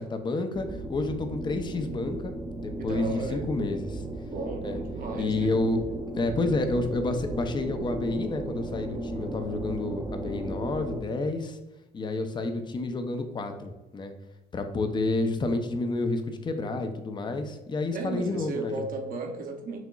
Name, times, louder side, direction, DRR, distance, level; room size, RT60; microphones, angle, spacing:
voice 1, 0.0-2.3 2.6-4.0 4.6-4.8 5.1-5.8 6.2-11.6 11.9-14.1 14.5-18.8, left 2 dB, 25° left, 7 dB, 0.5 m, -29 dB
sound 1, 0.5-11.0, right 1 dB, 20° right, 0.6 m, -36 dB
voice 2, 2.8-3.5 4.2-5.5 17.9-19.8, right 3 dB, 55° right, 3 dB, 0.9 m, -35 dB
6.0 x 2.8 x 2.3 m, 1.0 s
cardioid pair, 110°, 17 cm